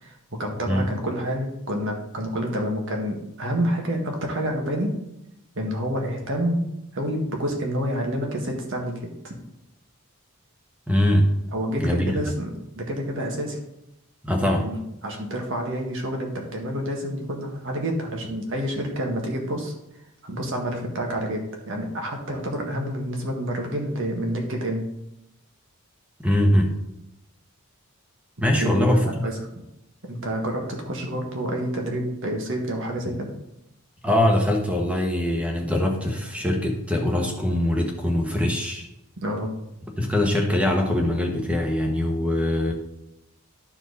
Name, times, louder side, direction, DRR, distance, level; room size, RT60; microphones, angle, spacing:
voice 1, 0.0-5.0 5.6-6.6 6.9-9.3 11.5-13.6 14.6-14.8 15.0-19.7 20.2-24.9 28.5-29.6 30.1-33.3 39.2-39.5, equal, 60° right, 1 dB, 1.8 m, -28 dB
voice 2, 10.9-11.3 11.8-12.2 14.2-14.7 26.2-26.7 28.4-29.2 34.0-38.9 40.0-42.7, left 1 dB, 5° right, 2 dB, 1.2 m, -22 dB
12.5 x 4.5 x 4.1 m, 0.84 s
head